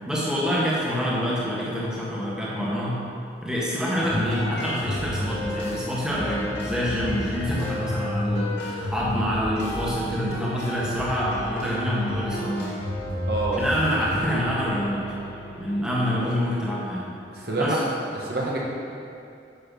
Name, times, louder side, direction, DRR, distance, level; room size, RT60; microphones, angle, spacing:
voice 1, 0.1-3.0 3.4-12.7 13.6-15.0 15.6-17.1 17.6-17.8, equal, 5° right, -7 dB, 1.5 m, -26 dB
sound 1, 4.0-17.4, left 1 dB, 70° left, 2.7 m, -32 dB
voice 2, 13.3-13.7 17.3-17.9 18.1-18.6, right 2 dB, 60° right, -4 dB, 1.8 m, -26 dB
10.0 x 6.7 x 5.5 m, 2.5 s
head